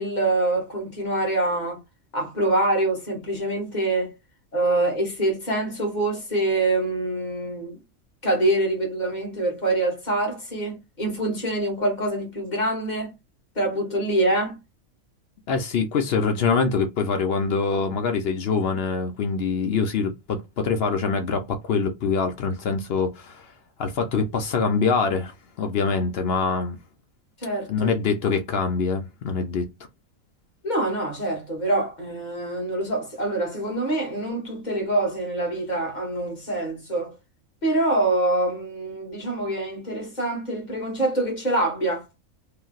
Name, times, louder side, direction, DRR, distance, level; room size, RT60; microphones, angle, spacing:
voice 1, 0.0-1.8 2.1-4.1 4.5-7.8 8.2-13.1 13.5-14.6 27.4-27.9 30.6-37.2 37.6-42.1, right 2 dB, 35° left, 1.4 m, -25 dB
voice 2, 15.5-23.5 23.8-26.8 27.7-29.7, left 5 dB, 60° left, 0.7 m, -24 dB
3.1 x 2.7 x 2.3 m
omnidirectional pair, 1.4 m